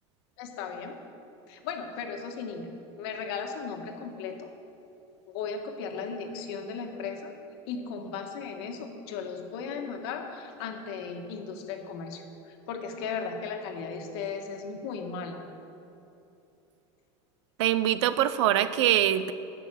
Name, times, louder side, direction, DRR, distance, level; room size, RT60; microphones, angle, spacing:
voice 1, 0.4-0.9 1.5-2.7 3.0-4.5 5.3-7.3 7.7-15.4, left 5 dB, 65° left, 4 dB, 1.6 m, -36 dB
voice 2, 17.6-19.3, right 12 dB, 80° right, 14 dB, 0.6 m, -23 dB
11.0 x 6.2 x 8.4 m, 2.9 s
supercardioid pair, 155°, 15 cm